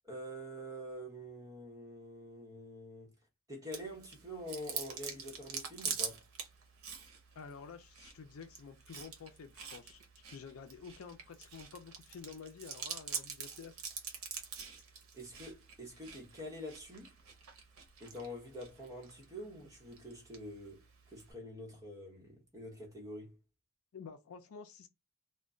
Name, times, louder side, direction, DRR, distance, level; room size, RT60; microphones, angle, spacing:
voice 1, 0.0-3.1 3.5-6.2 15.1-17.2 18.0-23.4, equal, 15° right, 1.0 m, -46 dB
Chewing mastication, 3.7-21.3, right 6 dB, 80° right, 0.7 m, -46 dB
voice 2, 7.4-13.8 23.9-24.9, left 5 dB, 85° left, 0.5 m, -50 dB
2.2 x 2.1 x 3.6 m
head